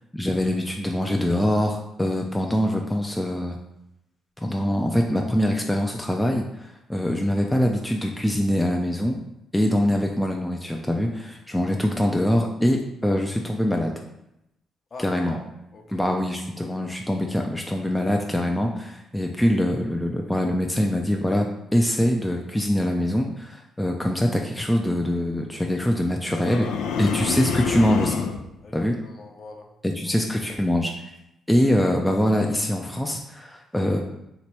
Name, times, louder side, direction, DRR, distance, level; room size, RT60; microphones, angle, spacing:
voice 1, 0.1-3.6 4.4-9.2 9.5-13.9 15.0-15.4 15.9-26.6 27.0-28.3 28.7-28.9 29.8-30.9 31.5-34.0, left 1 dB, 5° left, 1 dB, 0.4 m, -23 dB
voice 2, 14.9-15.4 15.7-16.1 16.6-16.8 26.3-27.0 28.6-29.7 30.1-30.2 31.6-31.7, left 3 dB, 45° left, 2 dB, 0.7 m, -44 dB
sound 1, 26.3-28.4, left 5 dB, 90° left, 0.4 m, -27 dB
3.0 x 2.9 x 4.5 m, 0.85 s
cardioid pair, 90°, 0 cm